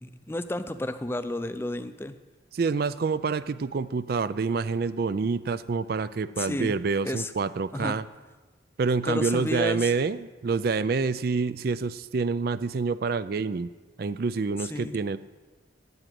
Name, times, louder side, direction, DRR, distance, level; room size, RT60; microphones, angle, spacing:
voice 1, 0.0-2.2 6.4-6.7 7.0-7.3 7.7-8.0 9.0-10.0 14.7-15.0, left 1 dB, 10° left, 11 dB, 0.5 m, -31 dB
voice 2, 2.5-8.0 8.8-13.7 14.0-15.2, right 4 dB, 50° right, 14 dB, 0.4 m, -27 dB
8.7 x 8.0 x 9.2 m, 1.2 s
head